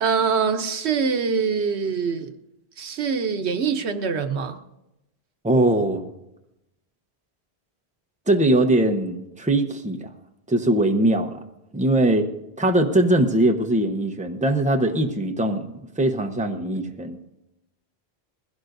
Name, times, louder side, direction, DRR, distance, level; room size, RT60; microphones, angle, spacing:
voice 1, 0.0-2.3 2.8-4.6, right 6 dB, 90° right, 8 dB, 1.1 m, -24 dB
voice 2, 5.4-6.1 8.3-10.1 10.5-11.4 11.7-12.3 12.6-17.2, right 1 dB, 10° right, 4 dB, 0.8 m, -21 dB
21.0 x 16.0 x 2.6 m, 0.90 s
omnidirectional pair, 1.1 m